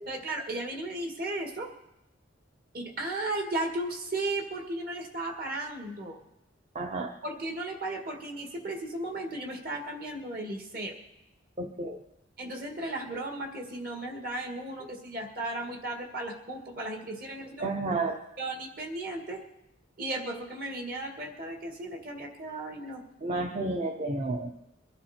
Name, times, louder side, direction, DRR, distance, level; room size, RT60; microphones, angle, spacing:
voice 1, 0.1-1.7 2.7-6.2 7.2-11.0 12.4-17.7 18.4-19.4 20.0-23.0, right 2 dB, 50° right, 3 dB, 2.0 m, -35 dB
voice 2, 6.7-7.1 11.6-12.0 17.6-18.2 23.2-24.5, right 2 dB, 35° right, 3 dB, 0.8 m, -31 dB
22.5 x 11.5 x 4.4 m, 0.93 s
head